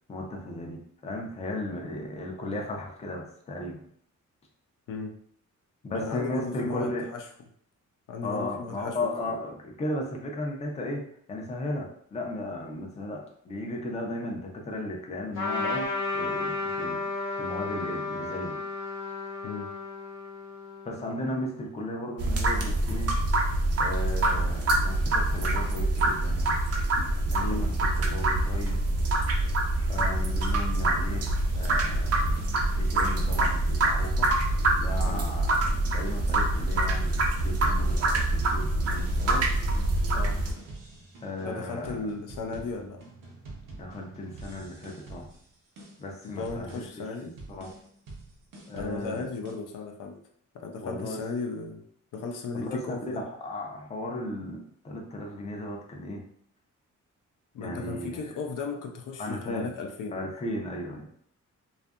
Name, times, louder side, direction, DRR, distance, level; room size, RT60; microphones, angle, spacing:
voice 1, 0.1-3.9 5.8-7.1 8.2-11.0 11.3-17.0 17.3-18.6 20.8-23.1 23.8-26.6 27.2-28.8 29.9-32.4 32.8-34.3 34.8-39.4 41.2-42.0 43.7-45.3 46.0-46.8 47.5-47.7 48.7-49.3 50.8-51.2 52.5-56.2 57.6-58.2 59.2-59.7 60.1-61.1, left 1 dB, 20° left, 1 dB, 0.4 m, -35 dB
voice 2, 5.9-7.2 8.1-9.4 19.4-19.7 27.4-27.7 35.0-35.3 40.1-40.4 41.4-43.0 46.2-47.3 48.7-50.2 50.5-51.8 52.1-53.2 57.5-60.2, left 4 dB, 80° left, 3 dB, 0.5 m, -36 dB
Trumpet, 15.3-21.2, left 3 dB, 40° left, 0.9 m, -33 dB
sound 1, 22.2-40.5, right 2 dB, 50° right, 0.5 m, -25 dB
sound 2, 30.8-49.5, right 2 dB, 90° right, 0.8 m, -46 dB
2.6 x 2.3 x 2.3 m, 0.65 s
wide cardioid pair, 140°, 31 cm